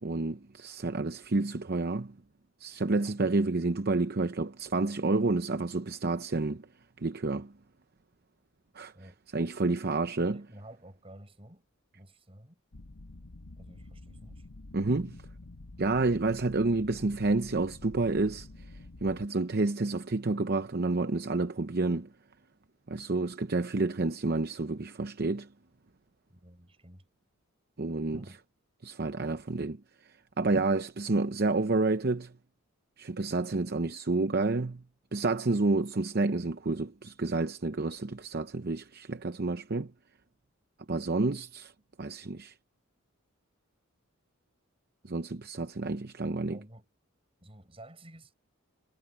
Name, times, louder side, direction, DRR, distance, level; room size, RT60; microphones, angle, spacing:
voice 1, 0.0-2.1 2.6-6.7 7.0-7.5 8.7-8.9 9.3-10.4 14.7-15.2 15.8-18.5 19.0-22.1 22.9-25.5 27.8-28.2 28.8-29.8 30.4-32.3 33.0-34.8 35.1-39.9 40.9-41.7 42.0-42.5 45.0-46.6, right 3 dB, 45° right, 0.7 m, -29 dB
voice 2, 8.9-9.5 10.3-11.7 11.9-12.6 13.6-14.5 26.3-27.0 28.1-28.4 46.5-46.9 47.4-48.3, right 1 dB, 25° right, 6.7 m, -52 dB
sound 1, 12.7-19.3, left 2 dB, 70° left, 1.0 m, -48 dB
head